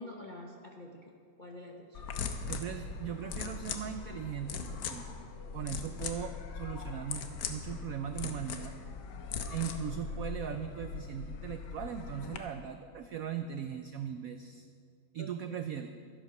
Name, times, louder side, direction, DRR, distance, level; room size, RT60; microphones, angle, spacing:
voice 1, 0.0-2.0 15.2-15.3, left 1 dB, 50° left, 0 dB, 0.6 m, -47 dB
sound 1, 1.9-12.4, left 6 dB, 65° left, 1.4 m, -40 dB
voice 2, 2.5-5.1 5.5-8.8 9.5-14.7 15.1-15.9, right 8 dB, 85° right, 8 dB, 0.7 m, -39 dB
12.5 x 10.0 x 6.0 m, 2.2 s
omnidirectional pair, 2.2 m